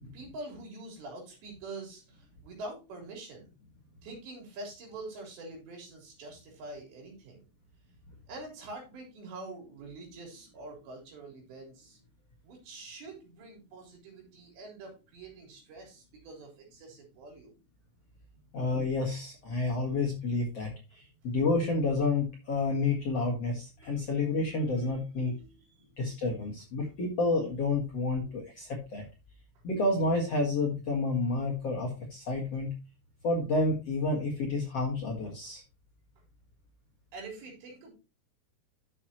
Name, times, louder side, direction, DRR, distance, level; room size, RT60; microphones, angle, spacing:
voice 1, 0.1-3.5 4.0-7.4 8.3-12.0 12.4-17.5 23.8-24.1 25.2-26.2 28.1-28.4 37.1-37.9, right 2 dB, 75° right, 0 dB, 5.8 m, -45 dB
voice 2, 18.5-25.3 26.0-29.0 29.6-32.7 33.2-35.6, left 3 dB, 50° left, -1 dB, 1.9 m, -30 dB
11.0 x 7.0 x 3.0 m, 0.29 s
omnidirectional pair, 5.0 m